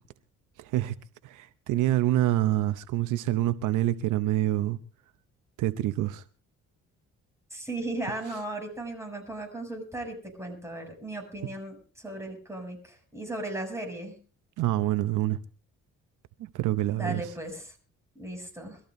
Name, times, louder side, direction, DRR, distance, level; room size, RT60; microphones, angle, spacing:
voice 1, 0.6-0.9 1.2-4.8 5.6-6.2 14.6-15.4 16.4-17.2, right 14 dB, 85° right, 0.7 m, -26 dB
voice 2, 7.5-14.2 16.9-17.7 18.2-18.8, right 2 dB, 10° right, 7.0 m, -36 dB
23.5 x 14.0 x 2.6 m
cardioid pair, 90°, 30 cm